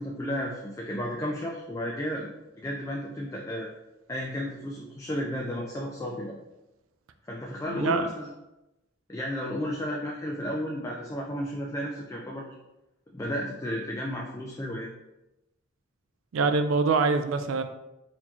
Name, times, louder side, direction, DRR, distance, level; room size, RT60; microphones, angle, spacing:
voice 1, 0.0-2.3 2.6-3.7 4.1-6.3 7.3-8.3 9.1-12.5 13.1-14.9, equal, 15° left, -2 dB, 0.4 m, -33 dB
voice 2, 7.7-8.1 16.3-17.6, right 4 dB, 80° right, 9 dB, 0.4 m, -24 dB
4.1 x 2.8 x 2.9 m, 0.94 s
head